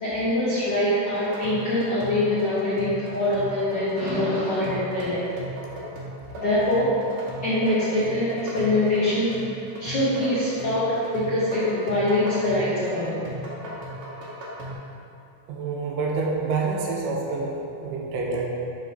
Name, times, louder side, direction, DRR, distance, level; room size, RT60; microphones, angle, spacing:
voice 1, 0.0-5.3 6.4-6.9 7.4-13.3, left 1 dB, 65° left, -12 dB, 1.1 m, -24 dB
sound 1, 1.1-14.8, equal, 65° right, 2.1 m, -37 dB
voice 2, 15.5-18.5, right 4 dB, 85° right, -2 dB, 2.3 m, -27 dB
5.5 x 3.7 x 5.1 m, 2.7 s
omnidirectional pair, 3.8 m